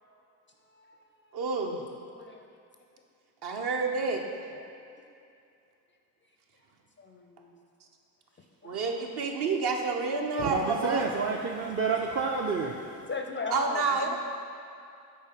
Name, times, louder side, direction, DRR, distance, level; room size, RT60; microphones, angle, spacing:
voice 1, 0.7-1.0 1.3-1.4 2.0-2.5 4.5-4.6 7.0-7.6 8.6-8.8 11.4-11.5 13.1-14.2, left 4 dB, 25° left, 3 dB, 0.4 m, -37 dB
voice 2, 1.3-1.8 3.4-4.2 8.6-11.1 13.5-14.2, right 4 dB, 50° right, 2 dB, 0.9 m, -29 dB
voice 3, 10.4-13.1, right 4 dB, 30° right, 0 dB, 0.5 m, -30 dB
5.4 x 4.2 x 4.7 m, 2.5 s
hypercardioid pair, 55°, 50 cm